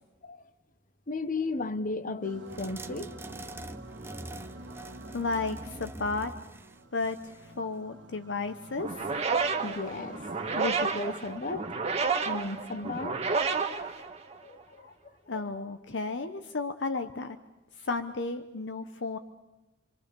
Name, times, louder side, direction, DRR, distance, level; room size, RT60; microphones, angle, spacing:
voice 1, 1.1-3.1 9.6-11.7 12.2-13.2 14.4-15.4, left 3 dB, 45° left, 1.1 m, -35 dB
sound 1, 2.2-11.0, right 2 dB, 75° right, 1.7 m, -49 dB
sound 2, 2.5-7.5, right 1 dB, 10° right, 0.8 m, -44 dB
voice 2, 5.1-6.3 6.9-9.1 15.3-17.4 17.8-19.2, left 3 dB, 70° left, 0.9 m, -33 dB
sound 3, 8.8-14.6, right 4 dB, 35° right, 1.6 m, -30 dB
27.5 x 23.5 x 6.9 m
head